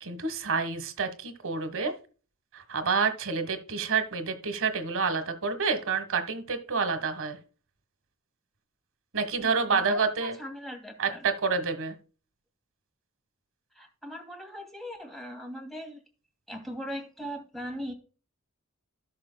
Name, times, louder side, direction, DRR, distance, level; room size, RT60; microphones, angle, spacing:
voice 1, 0.0-1.9 2.5-7.4 9.1-10.4 11.0-11.9, right 5 dB, 65° right, 9 dB, 1.5 m, -28 dB
voice 2, 9.4-11.3 13.7-16.0 16.5-17.9, equal, ahead, 1 dB, 2.4 m, -40 dB
15.5 x 6.4 x 2.3 m, 0.36 s
head